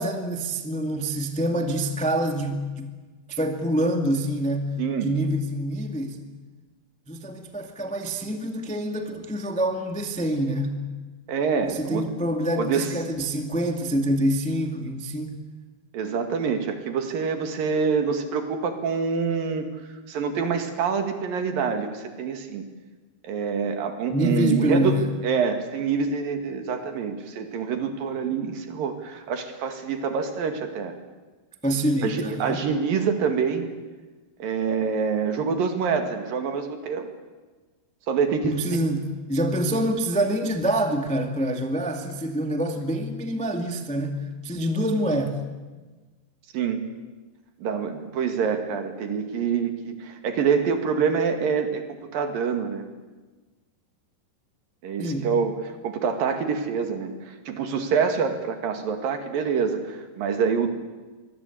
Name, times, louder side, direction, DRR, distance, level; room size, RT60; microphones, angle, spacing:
voice 1, 0.0-2.9 3.3-6.2 7.1-10.8 11.6-15.4 24.1-25.1 31.6-32.6 38.4-45.4 55.0-55.3, right 1 dB, 5° left, 5 dB, 0.6 m, -26 dB
voice 2, 11.3-12.1 12.6-12.9 15.9-19.7 20.1-22.6 23.2-30.9 32.0-33.7 34.4-37.1 38.1-38.5 46.5-46.8 47.6-51.8 52.1-52.9 54.8-55.6 55.8-60.7, right 6 dB, 65° right, 6 dB, 3.6 m, -26 dB
24.0 x 22.0 x 8.5 m, 1.3 s
omnidirectional pair, 4.5 m